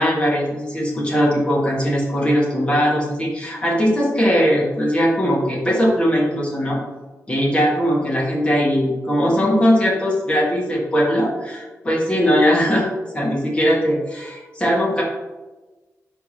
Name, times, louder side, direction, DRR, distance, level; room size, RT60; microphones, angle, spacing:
voice 1, 0.0-6.8 7.3-12.8 13.1-15.0, equal, 20° left, -4 dB, 2.1 m, -19 dB
10.5 x 3.6 x 3.2 m, 1.2 s
wide cardioid pair, 115°, 6 cm